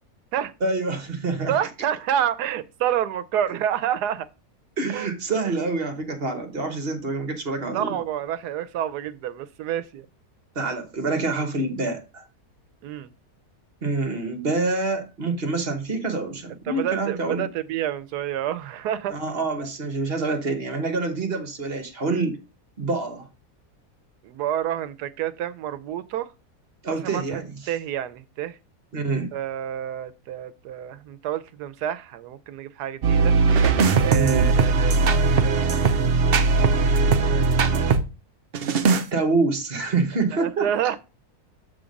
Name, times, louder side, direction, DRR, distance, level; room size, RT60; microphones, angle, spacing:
voice 1, 0.6-1.6 3.5-3.6 4.8-8.0 10.5-12.2 13.8-17.4 19.1-22.4 22.8-23.3 26.8-27.6 28.9-29.3 34.1-34.5 38.8-40.9, right 3 dB, 40° right, 1.2 m, -26 dB
voice 2, 1.5-4.3 4.9-5.1 7.7-10.1 12.8-13.1 16.7-19.2 24.2-26.3 27.0-28.6 29.3-33.4 34.0-35.0 35.4-36.0 37.3-37.9 40.3-41.0, right 10 dB, 85° right, 1.1 m, -28 dB
sound 1, 33.0-38.0 38.5-39.0, right 4 dB, 60° right, 0.6 m, -19 dB
7.0 x 3.7 x 5.1 m
omnidirectional pair, 1.7 m